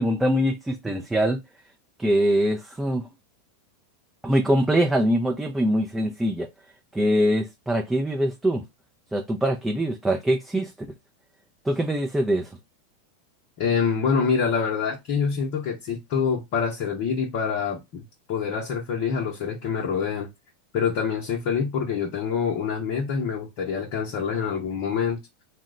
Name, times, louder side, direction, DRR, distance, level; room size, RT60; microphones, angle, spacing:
voice 1, 0.0-1.4 2.0-3.0 4.2-6.5 6.9-8.6 9.1-10.9 11.6-12.6, equal, 10° right, 0.5 m, -23 dB
voice 2, 13.6-18.0 18.3-20.3 20.7-25.2, left 6 dB, 55° left, 0.7 m, -26 dB
2.9 x 2.1 x 3.6 m
hypercardioid pair, 95°, 0 cm